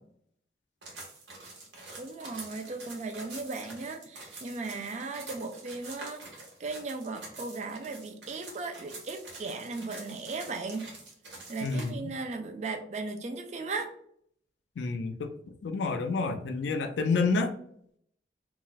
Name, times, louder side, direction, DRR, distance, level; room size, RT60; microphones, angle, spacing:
sound 1, 0.8-11.9, right 3 dB, 85° right, 0.9 m, -46 dB
voice 1, 2.0-6.2 6.6-10.9 11.5-13.9, right 3 dB, 40° right, 6 dB, 0.3 m, -37 dB
voice 2, 11.6-12.1 14.8-15.3 15.6-17.5, left 4 dB, 90° left, 8 dB, 0.4 m, -29 dB
2.3 x 2.0 x 3.9 m, 0.67 s
head